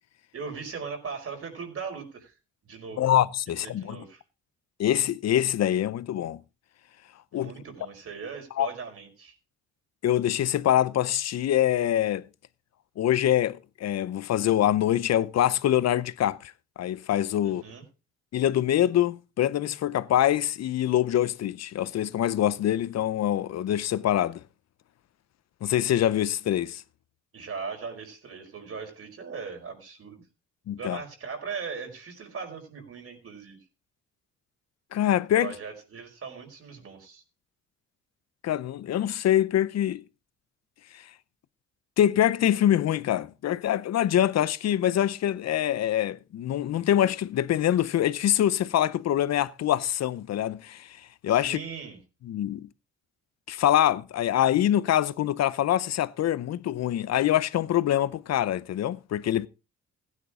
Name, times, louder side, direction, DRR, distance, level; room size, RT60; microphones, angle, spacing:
voice 1, 0.3-2.3 2.6-3.1 3.5-4.2 7.3-9.3 17.4-17.8 27.3-30.2 30.8-33.6 35.4-37.2 51.3-52.0, right 5 dB, 50° right, 4.9 m, -39 dB
voice 2, 3.0-4.0 4.8-6.4 7.3-7.5 8.6-8.7 10.0-12.3 13.0-16.5 16.8-17.6 18.3-24.4 25.6-26.8 30.7-31.0 34.9-35.5 38.4-40.0 42.0-51.0 51.2-51.6 52.3-52.7 53.5-59.5, left 11 dB, 60° left, 0.7 m, -24 dB
15.5 x 10.0 x 3.7 m
cardioid pair, 90°, 30 cm